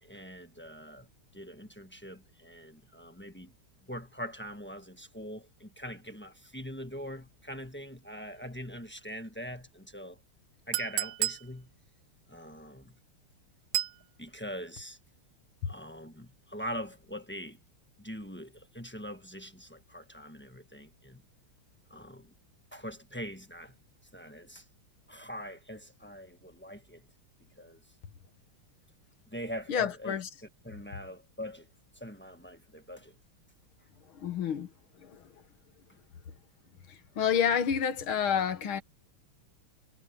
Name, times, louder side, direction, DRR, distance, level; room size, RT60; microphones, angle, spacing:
voice 1, 0.0-1.1 1.3-3.5 3.9-10.2 10.7-11.7 12.3-13.0 14.2-15.0 15.7-17.6 18.0-21.2 21.9-22.3 22.7-23.8 24.1-24.7 25.1-27.0 27.6-27.8 29.3-31.7 31.9-33.1, equal, 5° left, 1.0 m, -43 dB
Chink clink, 10.7-11.5 13.7-14.0, right 13 dB, 80° right, 1.5 m, -31 dB
voice 2, 29.7-30.3 34.1-34.7 35.0-35.2 36.9-38.8, left 8 dB, 75° left, 2.2 m, -29 dB
omnidirectional pair, 2.4 m